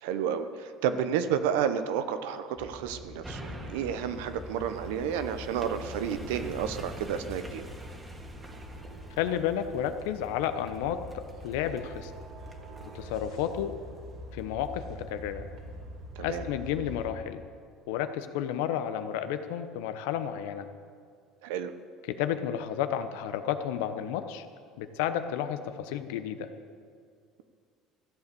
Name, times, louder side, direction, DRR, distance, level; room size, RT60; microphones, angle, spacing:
voice 1, 0.0-7.6 16.2-16.4 21.4-21.7, right 8 dB, 85° right, 10 dB, 0.8 m, -31 dB
sound 1, 2.5-17.1, equal, 70° right, 2.7 m, -45 dB
sound 2, 3.2-14.7 15.1-15.2, equal, 15° right, 1.8 m, -46 dB
voice 2, 9.2-12.1 12.8-13.7 14.3-15.4 16.2-17.4 17.9-20.7 22.1-24.5 24.8-26.5, left 10 dB, 85° left, 10 dB, 0.8 m, -32 dB
14.0 x 8.2 x 6.9 m, 2.2 s
supercardioid pair, 95°, 0 cm